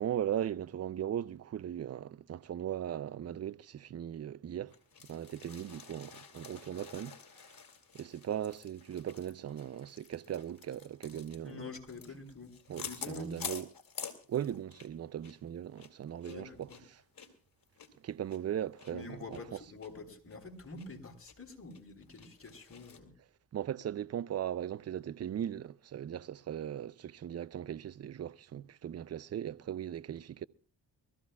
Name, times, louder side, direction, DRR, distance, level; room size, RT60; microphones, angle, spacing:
voice 1, 0.0-4.8 5.1-7.6 7.9-11.6 12.7-13.7 14.3-17.0 18.0-19.6 23.5-30.5, right 10 dB, 35° right, 0.5 m, -38 dB
sound 1, 4.7-15.0 15.2-15.4 15.7-18.9 19.3-19.4 19.8-19.9 20.3-20.9 21.3-21.4 21.7-23.0, left 6 dB, 50° left, 2.8 m, -48 dB
voice 2, 11.4-13.4 16.2-16.8 18.9-23.1, left 3 dB, 30° left, 4.0 m, -47 dB
23.5 x 15.0 x 2.3 m
supercardioid pair, 50°, 43 cm